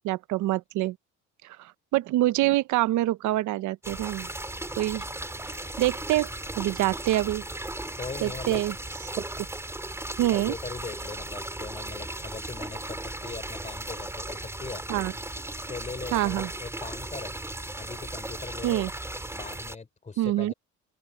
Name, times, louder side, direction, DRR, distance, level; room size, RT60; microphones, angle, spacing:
voice 1, 0.0-1.0 1.4-4.3 4.8-5.0 5.5-6.3 6.6-7.4 8.2-8.7 10.2-10.5 14.9-15.1 16.1-16.5 18.6-18.9 20.2-20.5, right 16 dB, 75° right, 0.9 m, -26 dB
sound 1, 3.8-19.8, right 1 dB, 10° right, 4.6 m, -36 dB
voice 2, 8.0-8.6 9.4-9.5 10.3-14.8 15.7-17.4 17.7-18.9 19.3-20.5, left 4 dB, 25° left, 3.4 m, -40 dB
open air
cardioid pair, 95°, 30 cm